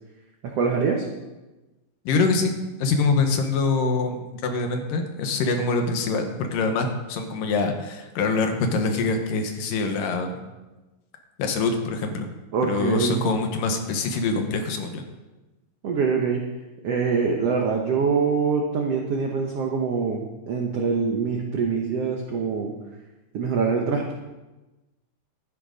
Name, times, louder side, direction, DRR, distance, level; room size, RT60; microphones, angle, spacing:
voice 1, 0.4-1.0 12.5-13.2 15.8-16.4 16.8-22.7 23.3-24.1, right 5 dB, 75° right, 1 dB, 1.4 m, -24 dB
voice 2, 2.1-2.5 2.8-10.4 11.4-12.3 12.7-15.0, left 4 dB, 70° left, 5 dB, 2.6 m, -24 dB
13.0 x 9.6 x 5.1 m, 1.1 s
omnidirectional pair, 4.3 m